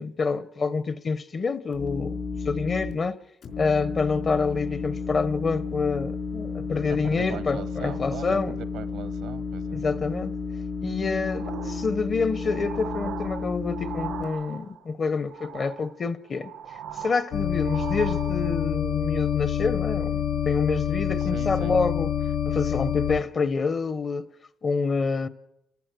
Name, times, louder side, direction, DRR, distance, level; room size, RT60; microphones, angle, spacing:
voice 1, 0.0-3.2 3.6-8.6 9.7-10.3 10.8-16.5 16.9-22.1 22.4-24.3 24.6-25.3, left 4 dB, 45° left, 0.9 m, -27 dB
sound 1, 1.7-2.9 3.4-14.2, left 5 dB, 65° left, 3.9 m, -32 dB
voice 2, 6.9-9.8 21.2-21.8, right 9 dB, 90° right, 1.0 m, -40 dB
sound 2, 11.2-14.9 15.2-16.0 16.3-18.7 19.3-19.4, right 9 dB, 70° right, 0.6 m, -39 dB
sound 3, 17.3-23.2, left 9 dB, 80° left, 0.8 m, -27 dB
30.0 x 14.0 x 6.3 m
cardioid pair, 90°, 0 cm